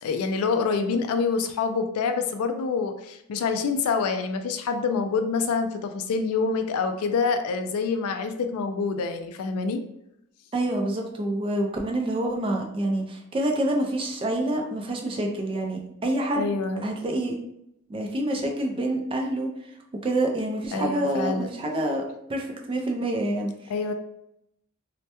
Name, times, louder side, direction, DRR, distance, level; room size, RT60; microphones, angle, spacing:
voice 1, 0.0-9.8 16.3-16.9 20.7-21.5 23.7-23.9, left 4 dB, 75° left, 7 dB, 0.3 m, -26 dB
voice 2, 10.5-16.5 16.8-17.4 17.9-19.7 20.0-22.0 22.3-23.7, right 1 dB, 25° right, 2 dB, 0.3 m, -27 dB
2.2 x 2.1 x 2.8 m, 0.79 s
head